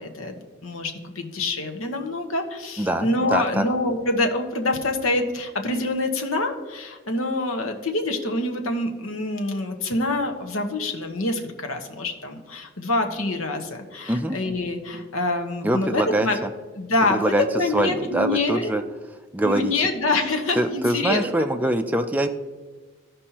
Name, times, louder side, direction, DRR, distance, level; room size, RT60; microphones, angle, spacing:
voice 1, 0.0-16.4 16.8-18.7 19.4-21.5, left 2 dB, 90° left, 5 dB, 1.2 m, -26 dB
voice 2, 2.8-3.6 14.1-14.4 15.6-16.5 17.1-17.5 17.7-18.8 19.3-19.7 20.6-22.3, right 1 dB, 10° right, 5 dB, 0.4 m, -23 dB
15.5 x 5.3 x 2.9 m, 1.3 s
head